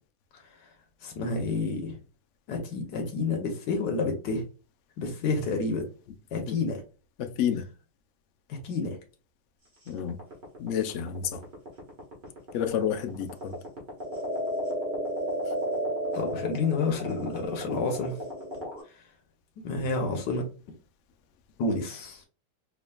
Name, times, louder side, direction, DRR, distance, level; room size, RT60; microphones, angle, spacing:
voice 1, 1.0-1.9 2.5-4.4 5.0-5.9 6.3-6.8 8.5-9.0 16.1-18.2 19.6-20.4 21.6-22.2, left 3 dB, 90° left, 1.5 m, -29 dB
voice 2, 7.2-7.7 9.9-10.2 10.6-11.4 12.5-13.6, left 9 dB, 65° left, 0.7 m, -29 dB
sound 1, 9.9-18.8, right 1 dB, 30° right, 1.6 m, -33 dB
4.6 x 3.0 x 2.3 m
omnidirectional pair, 1.8 m